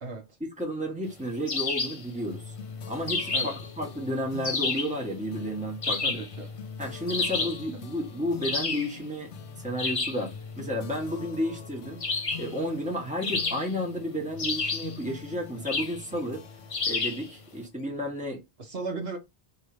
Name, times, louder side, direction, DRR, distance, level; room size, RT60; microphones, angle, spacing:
voice 1, 0.0-0.4 3.3-3.6 5.9-6.5 7.4-7.5 18.6-19.2, right 3 dB, 60° right, 1.1 m, -36 dB
voice 2, 0.6-2.5 2.9-6.0 6.8-9.3 9.6-12.0 12.3-16.4 16.9-18.4, equal, 5° right, 1.3 m, -32 dB
sound 1, 1.5-2.0 3.1-3.7 4.4-5.0 5.8-6.3 7.1-7.6 8.4-8.9 9.8-10.2 12.0-12.5 13.2-13.9 14.4-15.0 15.6-16.0 16.7-17.3, left 4 dB, 35° left, 0.7 m, -30 dB
sound 2, 2.3-18.2, left 6 dB, 75° left, 0.9 m, -44 dB
3.2 x 2.9 x 4.2 m
omnidirectional pair, 1.1 m